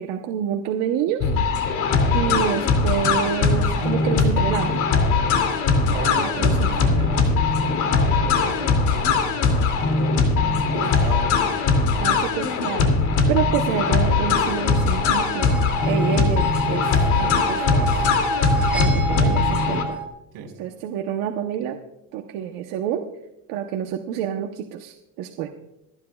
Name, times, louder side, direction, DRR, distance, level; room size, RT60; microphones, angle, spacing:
voice 1, 0.0-1.7 2.1-4.8 6.2-6.9 10.7-11.1 11.8-15.6 15.8-18.1 18.7-20.0 20.6-21.8 22.1-23.1 23.5-25.5, right 9 dB, 90° right, 4 dB, 1.0 m, -28 dB
sound 1, 1.2-19.8, left 4 dB, 60° left, 2.6 m, -20 dB
voice 2, 5.8-9.9 10.2-11.7 20.3-20.5, right 5 dB, 70° right, 1 dB, 3.6 m, -37 dB
sound 2, 10.7-11.8 14.2-20.1, right 2 dB, 5° right, 1.3 m, -30 dB
27.5 x 10.0 x 2.4 m, 0.88 s
cardioid pair, 165°, 34 cm